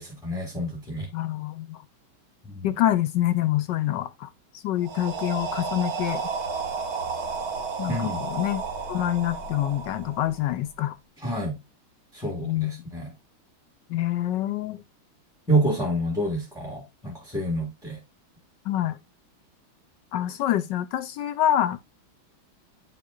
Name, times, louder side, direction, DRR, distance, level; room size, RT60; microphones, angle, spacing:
voice 1, 0.0-1.1 2.5-2.7 7.9-8.2 11.2-11.6 12.1-13.1 15.5-18.0, right 1 dB, ahead, 1.3 m, -28 dB
voice 2, 1.1-1.8 2.6-4.3 4.5-6.2 7.8-8.6 8.9-11.0 12.4-12.7 13.9-14.8 18.7-19.0 20.1-21.8, left 12 dB, 75° left, 1.1 m, -26 dB
sound 1, 4.8-10.7, right 5 dB, 50° right, 1.4 m, -32 dB
8.9 x 5.7 x 2.3 m
omnidirectional pair, 2.3 m